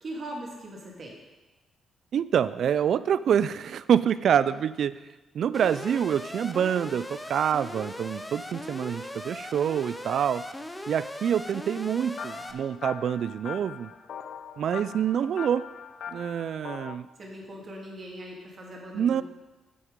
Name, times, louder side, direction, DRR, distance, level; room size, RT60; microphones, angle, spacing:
voice 1, 0.0-1.1 17.2-19.2, right 1 dB, 40° right, -2 dB, 2.2 m, -40 dB
voice 2, 2.1-4.9 5.3-10.4 10.9-13.9 14.6-15.6 16.1-17.1 18.9-19.2, right 8 dB, 60° right, 16 dB, 0.3 m, -26 dB
Alarm, 5.5-12.5, left 1 dB, 10° left, 0.6 m, -39 dB
sound 1, 12.2-17.0, left 7 dB, 65° left, 0.6 m, -41 dB
8.1 x 7.6 x 5.2 m, 1.1 s
cardioid pair, 130°, 0 cm